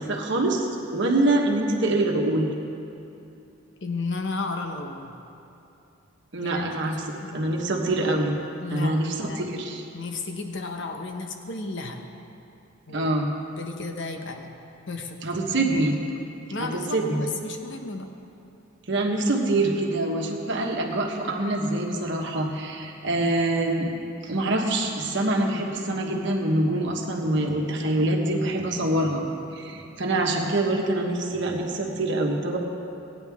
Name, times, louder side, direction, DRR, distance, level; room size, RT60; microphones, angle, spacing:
voice 1, 0.0-2.5 6.3-7.0 7.3-8.3 8.7-9.8 12.9-13.3 15.2-15.9 16.6-17.2 18.9-23.9 24.2-29.2 29.5-32.6, right 2 dB, 65° right, 0 dB, 1.3 m, -25 dB
voice 2, 3.8-5.1 6.4-7.4 8.6-9.7 9.9-12.0 12.9-13.1 13.6-14.5 14.9-15.4 16.5-18.1, left 3 dB, 65° left, 4 dB, 0.9 m, -34 dB
17.5 x 9.7 x 3.6 m, 2.7 s
head